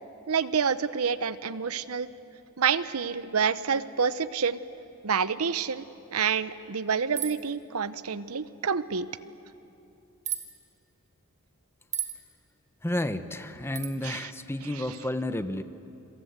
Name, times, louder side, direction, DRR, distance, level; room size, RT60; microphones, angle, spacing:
voice 1, 0.3-2.1 2.6-4.6 5.0-5.8 6.1-9.1 14.0-14.3, right 6 dB, 80° right, 15 dB, 0.8 m, -28 dB
sound 1, 7.2-7.5 10.2-10.5 11.9-12.2 13.7-13.9, right 10 dB, 35° right, 2.1 m, -32 dB
voice 2, 12.8-15.6, left 1 dB, 10° left, 11 dB, 0.9 m, -31 dB
27.5 x 26.5 x 8.1 m, 2.8 s
head